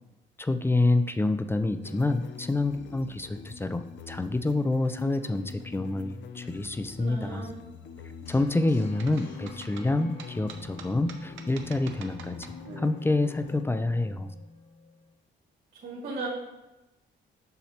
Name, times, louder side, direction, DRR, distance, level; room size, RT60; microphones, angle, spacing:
voice 1, 0.4-7.5 8.3-12.4 12.8-14.3, left 2 dB, 10° left, 10 dB, 0.3 m, -27 dB
sound 1, 1.8-13.6, left 6 dB, 65° left, 0.5 m, -44 dB
voice 2, 7.0-7.5 15.8-16.3, right 3 dB, 55° right, -6 dB, 2.1 m, -36 dB
sound 2, 8.2-15.2, left 3 dB, 50° left, 1.5 m, -48 dB
sound 3, 9.0-12.9, right 6 dB, 80° right, 0.7 m, -46 dB
7.3 x 5.6 x 2.9 m, 0.98 s
cardioid pair, 90°, 20 cm